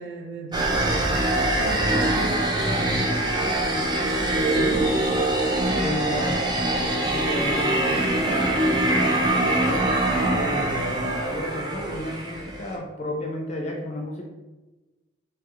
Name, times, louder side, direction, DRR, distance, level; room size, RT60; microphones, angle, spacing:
voice 1, 0.0-5.1, right 2 dB, 60° right, 1 dB, 0.6 m, -35 dB
sound 1, 0.5-12.7, right 1 dB, 20° right, 0.3 m, -23 dB
voice 2, 5.8-10.0 10.3-14.3, left 1 dB, 35° left, 0 dB, 0.5 m, -32 dB
3.3 x 2.3 x 2.9 m, 1.1 s
head